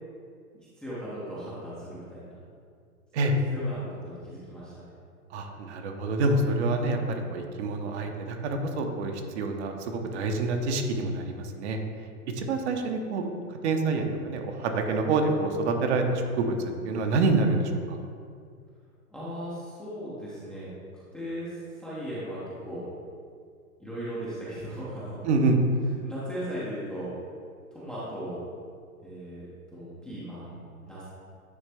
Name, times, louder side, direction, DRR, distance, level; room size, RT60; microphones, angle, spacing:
voice 1, 0.8-2.3 3.2-4.9 19.1-20.7 21.1-21.5 21.8-22.8 23.8-25.3 26.0-27.1 27.7-28.4 29.0-31.1, equal, ahead, -10 dB, 0.5 m, -37 dB
voice 2, 5.3-11.8 12.3-13.2 13.5-18.0 25.2-25.6, right 3 dB, 45° right, 4 dB, 0.8 m, -27 dB
9.6 x 3.3 x 3.4 m, 2.2 s
hypercardioid pair, 140°, 46 cm